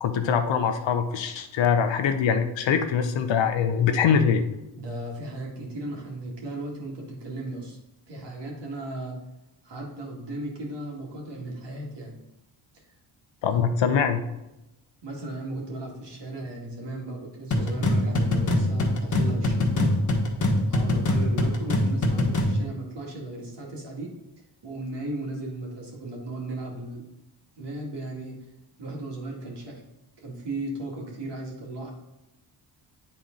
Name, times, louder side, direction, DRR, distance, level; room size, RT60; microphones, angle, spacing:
voice 1, 0.0-4.4 13.4-14.2, left 7 dB, 70° left, 7 dB, 0.9 m, -23 dB
voice 2, 4.8-7.8 8.1-9.2 9.6-12.2 12.7-12.8 13.5-13.7 15.0-20.0 20.7-24.1 24.6-27.0 27.6-28.3 28.8-29.8 30.2-31.9, right 2 dB, 60° right, -1 dB, 2.3 m, -36 dB
sound 1, 17.5-22.6, left 1 dB, 40° left, 1.5 m, -23 dB
9.2 x 4.3 x 3.9 m, 0.93 s
cardioid pair, 85°, 46 cm